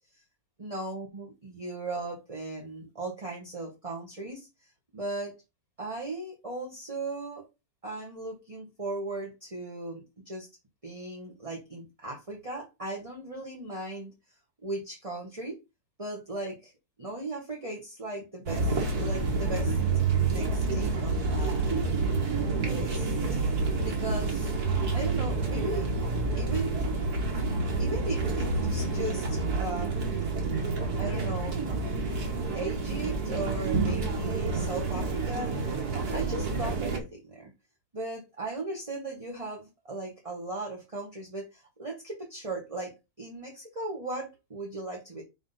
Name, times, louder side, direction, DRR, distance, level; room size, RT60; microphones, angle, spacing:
voice 1, 0.6-5.3 5.8-7.5 7.8-10.5 10.8-14.1 14.6-15.6 16.0-16.7 17.0-19.8 20.3-21.9 22.7-23.2 23.8-24.5 24.9-25.9 26.4-26.8 27.8-30.1 31.0-31.7 32.5-37.5 37.9-45.2, right 2 dB, 20° right, -2 dB, 1.8 m, -37 dB
sound 1, 18.5-37.0, right 3 dB, 85° right, 2.3 m, -28 dB
5.3 x 3.9 x 5.7 m, 0.24 s
omnidirectional pair, 1.6 m